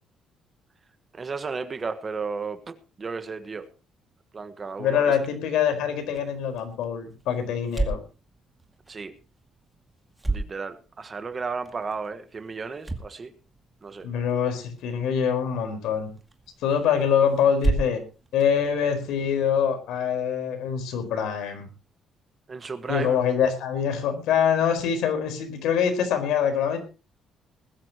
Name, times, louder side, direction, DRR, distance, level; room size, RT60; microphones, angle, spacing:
voice 1, 1.1-3.7 4.3-5.2 8.9-9.1 10.3-13.3 13.8-14.1 22.5-23.2, right 4 dB, 25° right, 1.3 m, -34 dB
voice 2, 4.8-8.0 14.0-16.1 16.6-18.0 18.3-21.7 22.9-26.8, left 8 dB, 90° left, 4.7 m, -24 dB
sound 1, 6.0-19.6, right 2 dB, 10° right, 2.1 m, -35 dB
20.5 x 13.0 x 3.0 m
cardioid pair, 150°, 0 cm